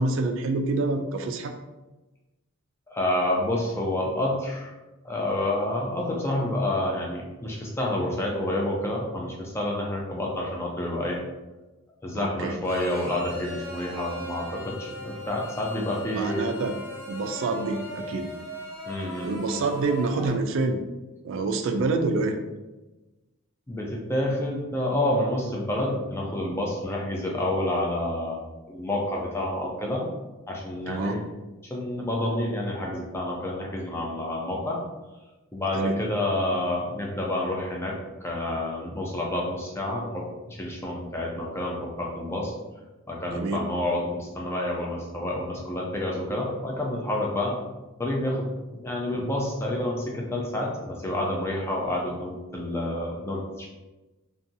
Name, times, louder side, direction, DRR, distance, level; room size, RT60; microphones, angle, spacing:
voice 1, 0.0-1.5 12.1-12.6 16.1-16.7 17.0-18.3 19.2-20.8 21.2-22.4 30.9-31.2 35.7-35.9 43.3-43.6, right 3 dB, 60° right, 6 dB, 0.3 m, -27 dB
voice 2, 2.9-4.7 5.0-11.2 12.0-16.5 18.9-19.3 23.7-28.4 28.7-30.0 30.5-31.2 31.7-34.8 35.5-38.0 38.2-42.5 43.1-47.6 48.0-53.7, left 1 dB, 10° left, -2 dB, 0.4 m, -29 dB
Bowed string instrument, 12.6-18.9, left 2 dB, 35° left, 0.9 m, -46 dB
sound 1, 13.3-20.3, equal, 10° right, 0.7 m, -40 dB
2.7 x 2.3 x 2.6 m, 1.1 s
head